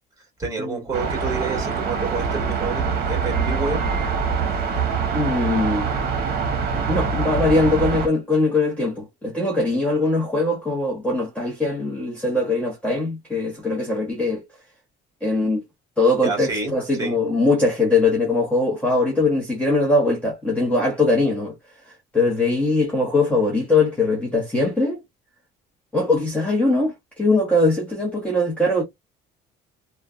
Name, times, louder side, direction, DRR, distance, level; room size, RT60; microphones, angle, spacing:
voice 1, 0.4-3.8 16.2-16.7 17.0-17.2, right 4 dB, 15° right, 1.8 m, -28 dB
sound 1, 0.9-8.1, right 5 dB, 55° right, 0.9 m, -24 dB
voice 2, 5.1-5.9 6.9-14.4 15.2-15.6 16.0-21.5 22.1-25.0 25.9-28.8, left 2 dB, 5° left, 0.8 m, -21 dB
3.1 x 2.2 x 2.3 m
cardioid pair, 155°, 19 cm